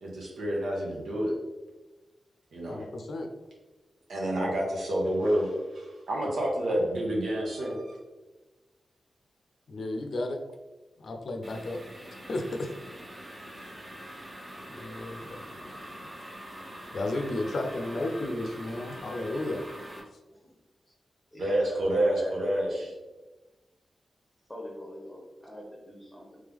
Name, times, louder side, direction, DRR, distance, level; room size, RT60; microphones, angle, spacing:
voice 1, 0.0-1.3 2.5-2.9 4.1-8.0 21.4-22.8, right 1 dB, 90° right, -3 dB, 1.2 m, -28 dB
voice 2, 2.7-3.3 9.7-10.4 11.0-11.8 12.3-12.7 13.6-13.7 14.7-16.0 16.9-19.6, left 2 dB, 60° left, 4 dB, 0.5 m, -33 dB
sound 1, 11.4-20.0, equal, 30° right, 0.9 m, -44 dB
voice 3, 17.6-18.2 20.3-20.5 21.3-22.7 24.5-26.4, left 1 dB, 5° left, -4 dB, 0.9 m, -44 dB
3.5 x 3.3 x 3.5 m, 1.1 s
wide cardioid pair, 135°, 0 cm